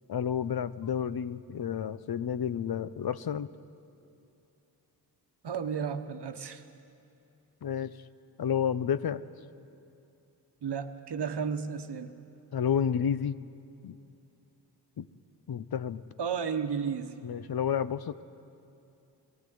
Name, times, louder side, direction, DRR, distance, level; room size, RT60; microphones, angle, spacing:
voice 1, 0.1-3.5 7.6-7.9 8.4-9.2 12.5-13.4 13.8-14.0 15.0-15.1 15.5-16.0 17.2-18.2, left 8 dB, 65° left, 14 dB, 0.7 m, -30 dB
voice 2, 5.4-6.6 10.6-12.1 16.2-17.1, right 6 dB, 80° right, 8 dB, 1.2 m, -33 dB
23.0 x 15.0 x 9.3 m, 2.7 s
wide cardioid pair, 75°, 40 cm